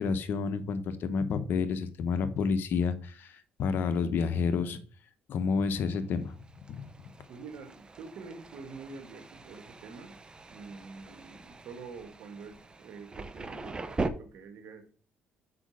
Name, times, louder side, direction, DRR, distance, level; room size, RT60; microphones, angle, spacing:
voice 1, 0.0-4.8 5.3-6.4 6.7-7.1, left 5 dB, 65° left, 11 dB, 1.0 m, -30 dB
Thunder, 6.0-14.1, right 3 dB, 25° right, 0.8 m, -41 dB
voice 2, 7.3-10.2 10.5-14.9, right 4 dB, 70° right, 7 dB, 1.9 m, -46 dB
6.3 x 5.2 x 6.3 m, 0.41 s
cardioid pair, 95°, 4 cm